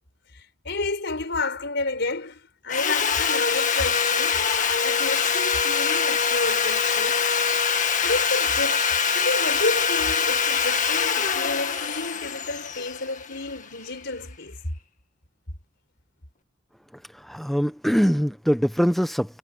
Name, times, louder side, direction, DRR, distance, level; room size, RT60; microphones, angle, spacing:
voice 1, 0.3-4.5 4.8-7.3 8.0-14.6, left 2 dB, 60° left, 5.5 m, -30 dB
Sawing, 2.7-13.8, left 6 dB, 40° left, 1.9 m, -24 dB
voice 2, 17.1-19.4, equal, ahead, 0.7 m, -23 dB
head